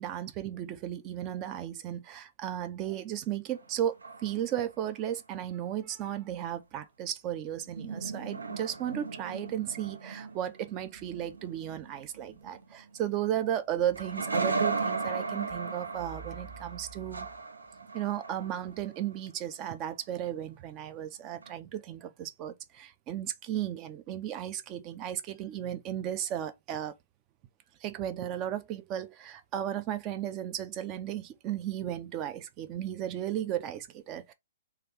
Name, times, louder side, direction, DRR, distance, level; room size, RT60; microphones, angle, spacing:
voice 1, 0.0-4.0 4.2-17.3 17.9-26.9 27.8-34.3, right 11 dB, 30° right, 0.5 m, -35 dB
sound 1, 3.5-4.8 7.5-13.4 14.0-19.0 21.4-21.5, right 4 dB, 80° right, 0.6 m, -36 dB
3.3 x 2.4 x 2.9 m
figure-of-eight pair, 125°, 0 cm